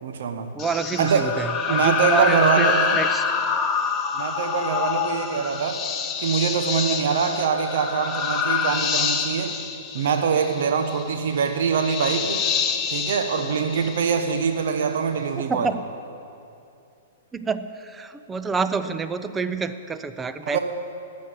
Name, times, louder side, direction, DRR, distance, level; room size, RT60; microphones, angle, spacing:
voice 1, 0.0-0.5 1.0-1.3 1.7-3.0 4.1-5.8 6.2-9.5 9.9-12.4 12.9-15.7 20.5-20.6, right 6 dB, 60° right, 6 dB, 1.0 m, -23 dB
voice 2, 0.5-3.3 15.4-15.8 17.3-20.6, right 5 dB, 15° right, 11 dB, 0.6 m, -28 dB
sound 1, 0.6-14.5, left 6 dB, 25° left, 1.0 m, -26 dB
12.0 x 7.5 x 8.7 m, 2.6 s
figure-of-eight pair, 110°, 0 cm